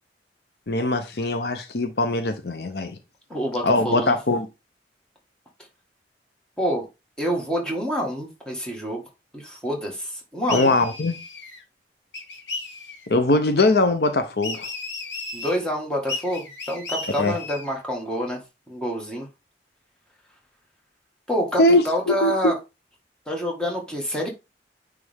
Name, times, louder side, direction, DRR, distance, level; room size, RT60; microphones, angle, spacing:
voice 1, 0.7-3.0 3.6-4.5 10.5-11.2 13.1-14.7 17.2-17.4 21.6-22.5, left 2 dB, 60° left, 0.7 m, -21 dB
voice 2, 3.3-4.2 6.6-6.9 7.2-9.0 9.3-10.7 15.3-18.4 18.7-19.3 21.3-22.6 23.3-24.3, equal, 5° left, 1.7 m, -27 dB
sound 1, 10.5-11.6 12.1-13.1 14.4-15.6 16.1-17.8, left 3 dB, 85° left, 1.7 m, -34 dB
9.7 x 3.4 x 3.5 m
head